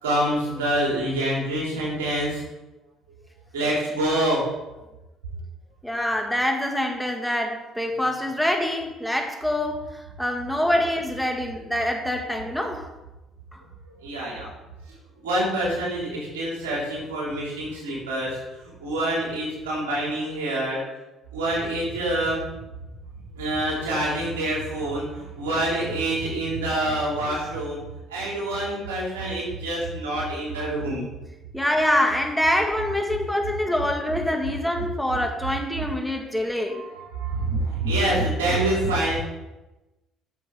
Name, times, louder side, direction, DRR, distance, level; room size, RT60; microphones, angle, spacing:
voice 1, 0.0-2.4 3.5-4.4 13.9-14.5 15.2-18.4 18.8-20.8 21.3-22.4 23.4-27.8 28.1-31.0 36.8-39.2, right 1 dB, 80° right, 3.3 m, -26 dB
voice 2, 5.8-12.9 13.5-13.6 31.5-36.8, left 1 dB, ahead, 1.9 m, -25 dB
11.5 x 7.0 x 3.7 m
figure-of-eight pair, 50°, 0 cm